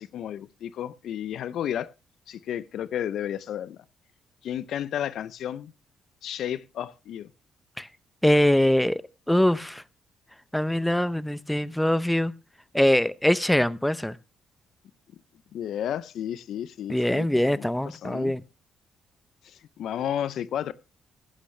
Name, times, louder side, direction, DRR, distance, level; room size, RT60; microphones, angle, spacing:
voice 1, 0.0-1.9 2.3-3.8 4.4-5.7 6.2-7.3 15.5-18.3 19.4-20.7, left 10 dB, 70° left, 0.5 m, -32 dB
voice 2, 8.2-9.8 10.5-12.3 12.7-14.2 16.9-18.4, left 1 dB, 5° left, 0.6 m, -23 dB
14.5 x 11.5 x 3.2 m
cardioid pair, 90°, 0 cm